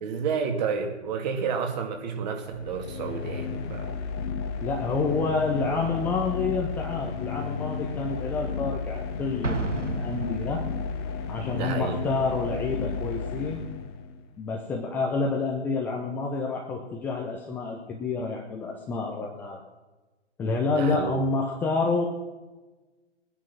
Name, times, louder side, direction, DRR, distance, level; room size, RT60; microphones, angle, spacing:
voice 1, 0.0-3.9 11.5-12.0 20.7-21.1, right 5 dB, 35° right, 4 dB, 2.5 m, -30 dB
sound 1, 2.5-14.3, left 5 dB, 20° left, 1.1 m, -33 dB
voice 2, 4.6-10.6 11.3-13.6 14.4-19.6 20.4-22.0, left 4 dB, 5° left, 0 dB, 0.6 m, -28 dB
Explosion, 9.4-11.1, right 3 dB, 90° right, 1.7 m, -32 dB
20.5 x 9.9 x 6.2 m, 1.2 s
figure-of-eight pair, 130°, 36 cm